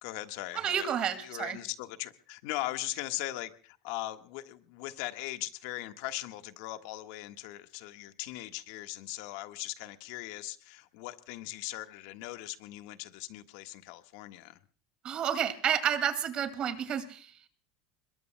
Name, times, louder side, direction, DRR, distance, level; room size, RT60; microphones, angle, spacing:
voice 1, 0.0-0.9 1.2-14.6, left 17 dB, 70° left, 8 dB, 1.4 m, -39 dB
voice 2, 0.5-1.6 15.0-17.3, right 9 dB, 40° right, 10 dB, 2.2 m, -30 dB
27.0 x 22.0 x 2.2 m, 0.41 s
supercardioid pair, 105°, 2 cm